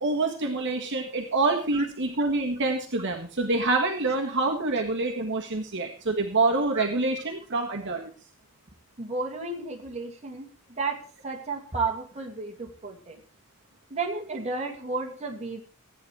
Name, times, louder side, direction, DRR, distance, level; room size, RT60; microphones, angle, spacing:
voice 1, 0.0-8.1, right 3 dB, 55° right, 1 dB, 1.7 m, -26 dB
voice 2, 9.0-13.2 13.9-15.6, right 3 dB, 30° right, 0 dB, 2.5 m, -33 dB
15.5 x 9.5 x 4.8 m, 0.39 s
head